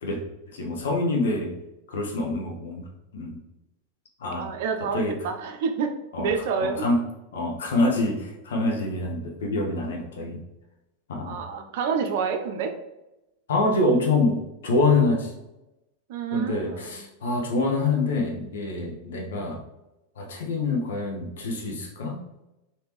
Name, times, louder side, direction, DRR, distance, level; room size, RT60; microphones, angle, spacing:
voice 1, 0.5-1.5 1.9-2.8 3.1-3.4 4.2-4.5 4.9-5.2 6.1-6.3 6.6-7.0 7.3-10.4 11.1-11.4 13.5-15.3 16.3-19.6 20.2-22.2, left 2 dB, 75° left, 1 dB, 0.9 m, -25 dB
voice 2, 4.4-5.9 6.2-6.8 11.3-12.7 16.1-17.1, right 6 dB, 65° right, 5 dB, 0.6 m, -28 dB
3.4 x 2.8 x 3.0 m, 0.95 s
hypercardioid pair, 100°, 0 cm